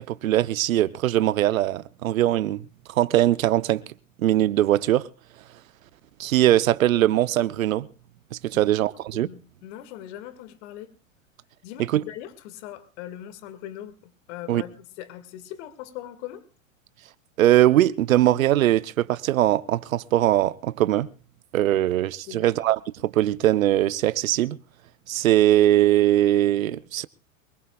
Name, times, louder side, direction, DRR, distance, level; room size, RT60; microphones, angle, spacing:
voice 1, 0.0-2.6 2.9-3.8 4.2-5.1 6.2-7.9 8.4-9.3 11.9-12.0 14.5-14.6 17.4-21.1 21.5-24.6 25.1-27.1, right 13 dB, 80° right, 0.8 m, -21 dB
voice 2, 9.1-10.9 11.6-16.4 22.3-22.5, left 12 dB, 60° left, 2.0 m, -40 dB
24.0 x 21.5 x 2.3 m
hypercardioid pair, 110°, 40 cm